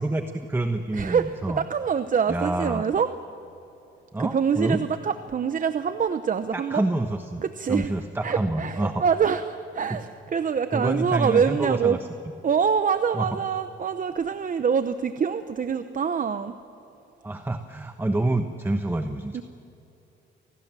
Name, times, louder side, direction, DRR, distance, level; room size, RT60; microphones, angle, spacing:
voice 1, 0.0-1.6 2.3-2.8 4.1-4.8 6.5-7.4 7.7-9.0 9.9-10.0 10.7-12.0 13.1-13.3 17.2-19.4, right 2 dB, 10° right, 7 dB, 1.1 m, -27 dB
voice 2, 0.9-3.1 4.2-6.8 7.4-7.9 8.2-12.0 12.4-16.5 19.3-19.4, right 6 dB, 40° right, 10 dB, 0.9 m, -25 dB
26.5 x 18.5 x 7.6 m, 2.9 s
cardioid pair, 90°, 20 cm